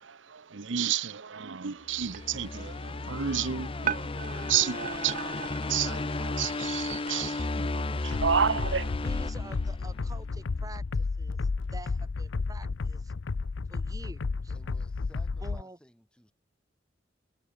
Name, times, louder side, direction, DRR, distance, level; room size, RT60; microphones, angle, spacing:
voice 1, 0.0-8.9, right 8 dB, 85° right, 0.9 m, -31 dB
sound 1, 1.9-10.2, left 2 dB, 30° left, 0.6 m, -34 dB
sound 2, 2.0-7.2, right 7 dB, 45° right, 2.1 m, -39 dB
sound 3, 8.1-15.6, left 4 dB, 85° left, 0.6 m, -32 dB
voice 2, 9.0-11.4 11.7-13.1 13.7-14.5 15.4-15.8, right 2 dB, 20° right, 2.4 m, -48 dB
voice 3, 14.5-16.3, equal, 5° left, 5.6 m, -58 dB
head